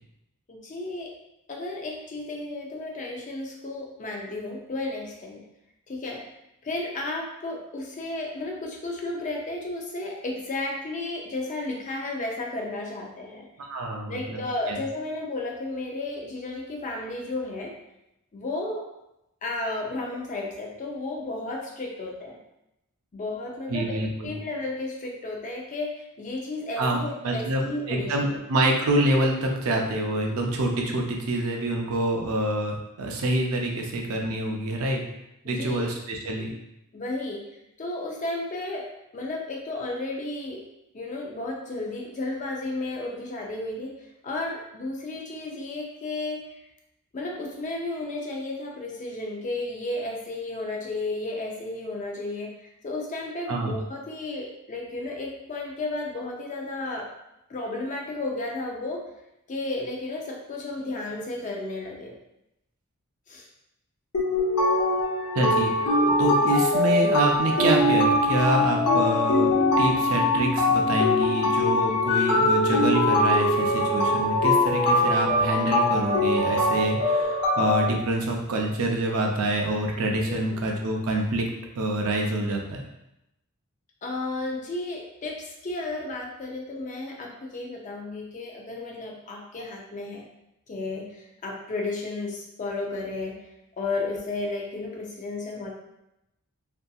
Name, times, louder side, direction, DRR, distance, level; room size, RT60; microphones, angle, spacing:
voice 1, 0.5-1.1 1.5-5.4 5.9-6.2 6.6-13.5 14.1-17.7 18.3-18.8 19.4-22.4 23.1-24.0 24.2-28.4 35.4-35.9 36.9-37.4 37.8-38.9 39.1-40.6 40.9-43.9 44.2-46.4 47.1-57.1 57.5-59.1 59.5-62.1 63.3-63.5 80.3-80.6 84.0-90.2 90.7-93.4 93.8-95.7, left 2 dB, 35° left, -1 dB, 0.4 m, -33 dB
voice 2, 13.6-14.4 14.7-14.8 23.7-24.3 26.8-35.0 35.4-36.5 53.5-53.8 65.4-81.5 81.8-82.8, right 1 dB, 70° right, 1 dB, 0.5 m, -26 dB
sound 1, 64.1-77.9, left 2 dB, 80° left, 0.6 m, -22 dB
2.6 x 2.5 x 2.3 m, 0.87 s
head